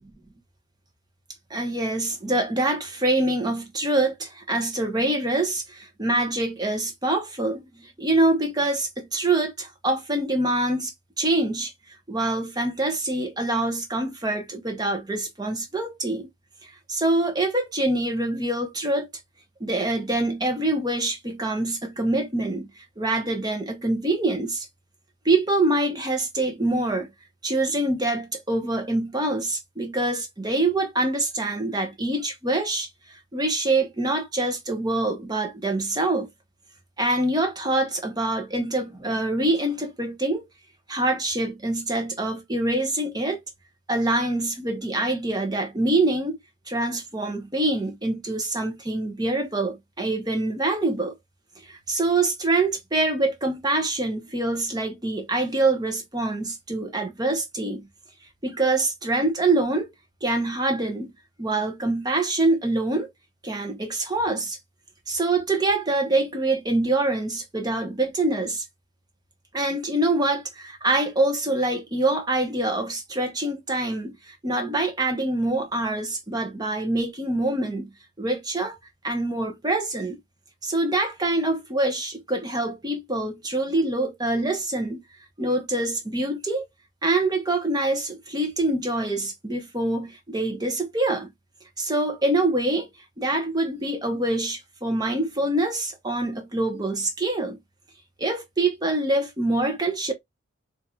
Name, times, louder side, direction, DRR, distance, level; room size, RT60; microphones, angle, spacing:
voice 1, 1.5-16.3 16.6-19.1 19.6-24.7 25.2-27.1 27.4-36.3 37.0-40.5 40.9-43.4 43.9-46.4 46.7-51.2 51.6-57.9 58.4-59.9 60.2-61.1 61.4-63.1 63.4-64.6 65.1-68.6 69.5-78.8 79.0-80.2 80.6-85.0 85.4-86.7 87.0-91.3 91.8-92.9 93.2-97.6 98.2-100.1, right 2 dB, 20° right, 1.0 m, -25 dB
4.3 x 2.8 x 2.4 m
head